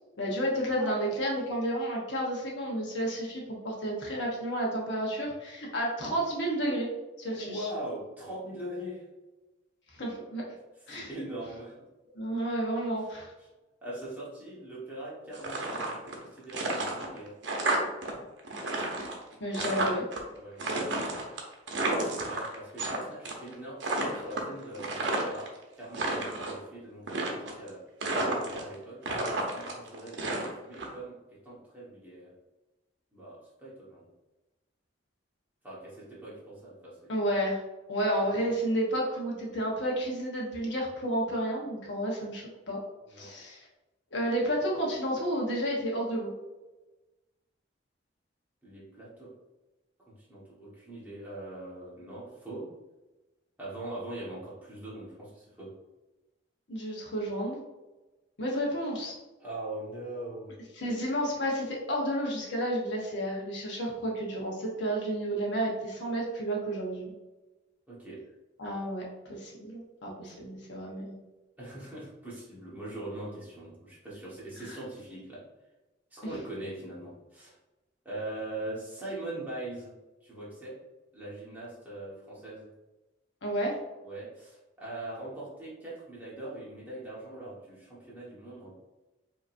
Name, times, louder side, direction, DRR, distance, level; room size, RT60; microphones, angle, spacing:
voice 1, 0.2-6.9 7.2-7.7 9.9-10.4 10.9-11.1 12.1-13.3 19.4-20.1 37.1-37.6 37.9-42.8 43.2-43.7 44.1-46.3 56.7-57.6 58.4-59.1 60.8-67.1 68.6-69.0 69.3-71.2 74.6-74.8 76.2-76.3 83.4-83.8, right 1 dB, 70° left, -2 dB, 1.1 m, -31 dB
voice 2, 7.3-9.0 10.9-11.7 13.0-13.1 13.4-13.5 13.8-17.3 20.3-21.2 21.9-25.4 25.8-27.8 28.5-32.3 33.1-34.1 35.6-37.1 38.4-38.5 43.1-43.3 48.6-49.3 50.1-52.7 53.6-55.7 59.4-60.5 67.9-68.2 70.2-70.3 71.6-75.4 76.1-77.5 78.0-79.9 80.2-80.7 81.1-82.7 84.0-88.7, right 1 dB, 10° right, -8 dB, 1.3 m, -41 dB
sound 1, 15.3-16.2 16.5-18.1 18.4-20.2 20.6-23.0 23.2-23.5 23.8-25.5 25.8-26.6 27.1-27.7 28.0-28.7 29.0-30.9, right 2 dB, 65° right, 0.8 m, -31 dB
5.0 x 2.9 x 2.6 m, 1.1 s
head